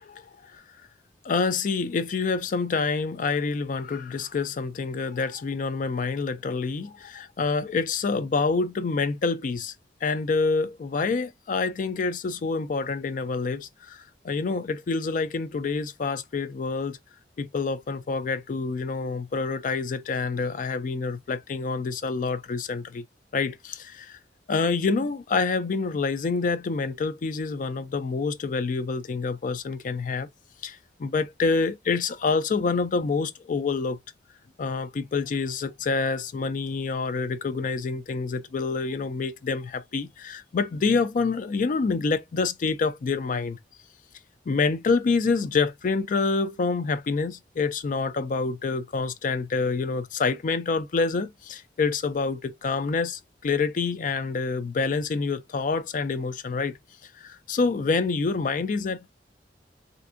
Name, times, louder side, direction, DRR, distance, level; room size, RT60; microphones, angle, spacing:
voice 1, 1.2-9.7 10.0-17.0 17.4-23.0 23.3-24.2 24.5-30.3 30.6-34.0 34.6-43.6 44.5-56.8 57.2-59.1, left 4 dB, 50° left, 0.3 m, -27 dB
3.4 x 2.6 x 2.5 m
head